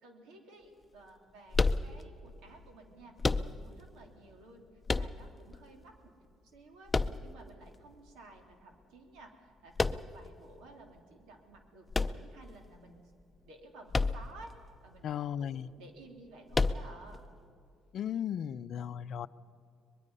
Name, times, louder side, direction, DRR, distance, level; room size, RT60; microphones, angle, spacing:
voice 1, 0.0-4.6 4.9-6.1 6.5-13.0 13.5-14.5 14.8-17.2, right 2 dB, 90° right, 3 dB, 3.1 m, -54 dB
sound 1, 1.5-2.3 3.2-3.9 4.9-5.6 6.9-7.7 9.8-10.3 11.9-12.8 13.9-14.5 14.7-14.8 16.5-17.2, left 3 dB, 25° left, 0.6 m, -30 dB
voice 2, 15.0-15.7 17.9-19.3, left 9 dB, 65° left, 15 dB, 0.5 m, -36 dB
23.0 x 21.5 x 5.5 m, 2.5 s
cardioid pair, 85°, 0 cm